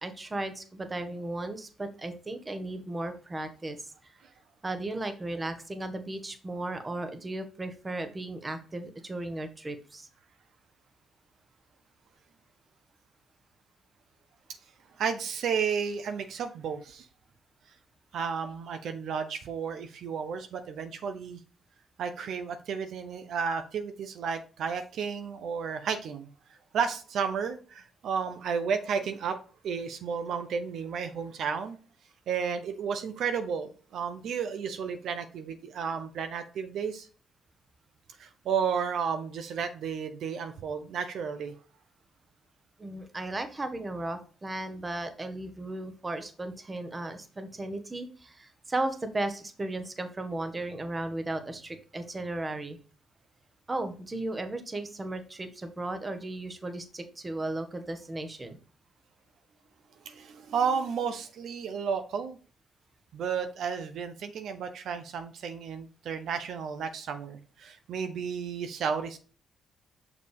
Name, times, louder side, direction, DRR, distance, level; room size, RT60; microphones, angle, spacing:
voice 1, 0.0-3.9 4.6-10.1 42.8-52.8 53.7-58.6, right 2 dB, 25° right, 8 dB, 1.2 m, -35 dB
voice 2, 15.0-17.1 18.1-21.4 22.0-26.3 26.7-29.4 29.6-31.8 32.3-37.1 38.2-41.5 60.0-62.4 63.1-69.2, right 6 dB, 70° right, 8 dB, 0.7 m, -32 dB
6.5 x 5.0 x 3.4 m, 0.38 s
cardioid pair, 90°, 0 cm